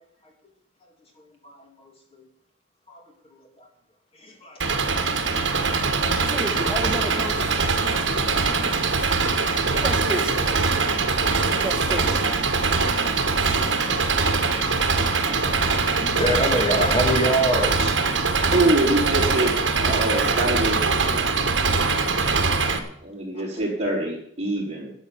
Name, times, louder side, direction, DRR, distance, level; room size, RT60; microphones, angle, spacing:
voice 1, 1.4-1.9 2.9-3.0 3.6-3.7 4.2-4.9 16.0-18.0 22.7-22.8, equal, 30° left, 1 dB, 3.1 m, -27 dB
Engine, 4.6-22.8, right 4 dB, 70° right, 1.5 m, -22 dB
voice 2, 6.3-7.5 9.8-10.4 11.6-12.3, right 1 dB, 5° right, 1 dB, 1.9 m, -30 dB
voice 3, 18.5-19.5 19.8-20.8 23.0-24.9, right 2 dB, 30° right, -7 dB, 5.0 m, -24 dB
13.0 x 8.4 x 7.5 m, 0.69 s
head